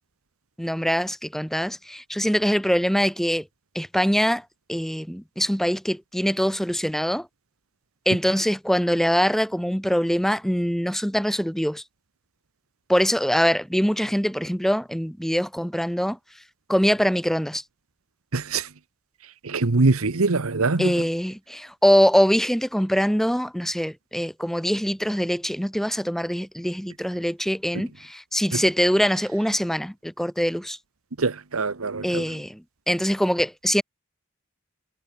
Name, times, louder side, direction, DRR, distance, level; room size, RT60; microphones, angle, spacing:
voice 1, 0.6-3.4 3.8-4.4 4.7-7.3 8.1-11.8 12.9-16.2 16.7-17.6 20.8-30.8 32.0-33.8, equal, ahead, 3.7 m, -23 dB
voice 2, 18.3-18.7 19.4-21.0 28.5-28.6 31.2-32.2, right 3 dB, 85° right, 1.1 m, -23 dB
head